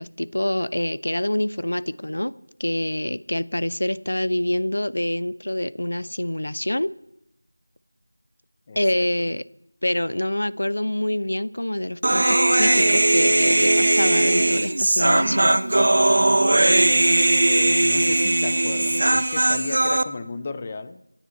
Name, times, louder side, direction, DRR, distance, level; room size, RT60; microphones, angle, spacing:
voice 1, 0.0-2.3 2.6-6.9 8.8-9.4 9.8-15.5, left 1 dB, 75° left, 17 dB, 0.8 m, -26 dB
voice 2, 8.7-9.3 15.2-15.3 16.6-17.1 17.5-21.0, left 4 dB, 15° left, 11 dB, 0.5 m, -35 dB
Human voice, 12.0-20.0, right 1 dB, 40° right, 0.7 m, -19 dB
24.5 x 10.0 x 4.3 m, 0.81 s
figure-of-eight pair, 180°, 0 cm